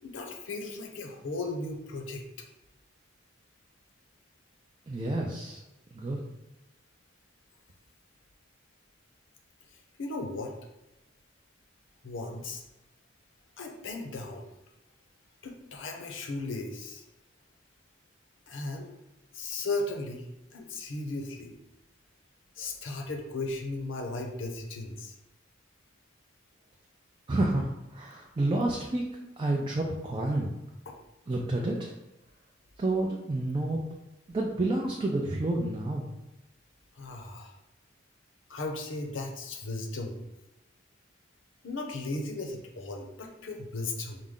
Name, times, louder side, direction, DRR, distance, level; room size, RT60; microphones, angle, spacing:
voice 1, 0.0-2.2 9.7-10.5 12.0-12.6 13.6-14.5 15.4-17.0 18.5-18.9 19.3-21.5 22.6-25.1 30.9-31.0 36.9-37.5 38.5-40.2 41.6-44.2, left 2 dB, 70° left, 2 dB, 0.7 m, -36 dB
voice 2, 4.9-5.6 5.9-6.2 27.3-29.1 29.4-30.5 31.3-31.9 32.8-33.8 34.3-36.1, right 2 dB, 25° right, -1 dB, 0.4 m, -29 dB
4.8 x 2.1 x 3.7 m, 0.95 s
head